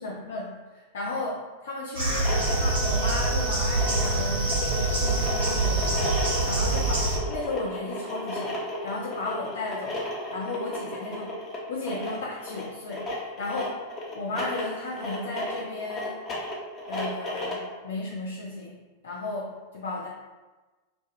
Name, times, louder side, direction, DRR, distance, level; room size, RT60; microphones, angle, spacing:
voice 1, 0.0-11.4 11.7-13.7 14.1-16.2 16.9-20.1, left 2 dB, 60° left, -3 dB, 0.3 m, -35 dB
sound 1, 1.9-7.2, right 2 dB, 75° right, 1.4 m, -25 dB
sound 2, 2.0-17.7, left 1 dB, 20° left, 0.7 m, -34 dB
Wind instrument woodwind instrument, 2.3-6.9, left 2 dB, 15° right, 0.6 m, -38 dB
2.5 x 2.2 x 3.1 m, 1.2 s
figure-of-eight pair, 90°, 0 cm